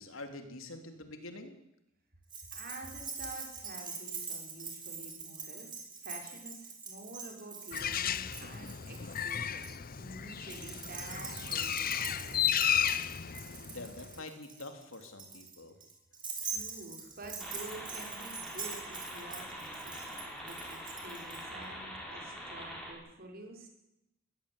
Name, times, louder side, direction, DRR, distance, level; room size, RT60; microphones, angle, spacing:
voice 1, 0.0-1.6 13.6-15.8, left 2 dB, 80° left, 6 dB, 3.3 m, -46 dB
Keys jangling, 2.3-9.7 10.4-21.4, right 5 dB, 25° right, 5.3 m, -44 dB
voice 2, 2.5-5.7 6.0-9.6 9.9-12.3 16.4-23.7, right 2 dB, 50° right, 2 dB, 5.5 m, -49 dB
Bird, 7.7-14.2, left 9 dB, 45° left, 0.8 m, -33 dB
sound 1, 17.4-22.9, equal, 5° left, 6.9 m, -44 dB
20.5 x 16.5 x 9.8 m, 0.86 s
head